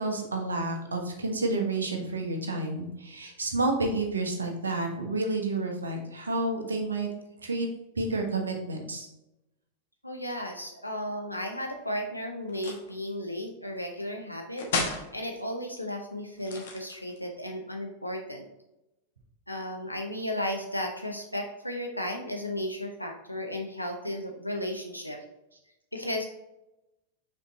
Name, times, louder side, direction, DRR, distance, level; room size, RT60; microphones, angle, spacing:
voice 1, 0.0-7.1 7.4-7.7 8.0-9.1, right 2 dB, 75° right, 2 dB, 1.2 m, -30 dB
voice 2, 10.0-14.7 15.1-18.5 19.5-25.2 25.9-26.2, equal, 90° left, 2 dB, 0.7 m, -34 dB
sound 1, 12.5-12.9 14.6-15.1 16.4-17.3, left 4 dB, 60° left, 1.3 m, -32 dB
5.6 x 4.3 x 4.1 m, 0.93 s
figure-of-eight pair, 90°, 0 cm